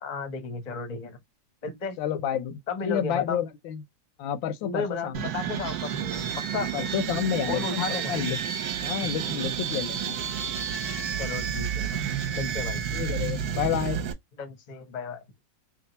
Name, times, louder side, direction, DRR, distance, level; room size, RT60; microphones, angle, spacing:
voice 1, 0.0-1.2 1.6-2.0 2.7-3.4 4.6-6.7 7.5-8.1 11.2-12.0 12.3-12.8 14.4-15.2, left 4 dB, 40° left, 0.6 m, -34 dB
voice 2, 2.0-3.8 4.2-5.3 6.7-8.4 8.8-10.2 12.9-14.0, left 9 dB, 90° left, 1.4 m, -30 dB
sound 1, 5.1-14.1, right 8 dB, 65° right, 1.2 m, -30 dB
3.4 x 2.4 x 3.9 m
omnidirectional pair, 2.1 m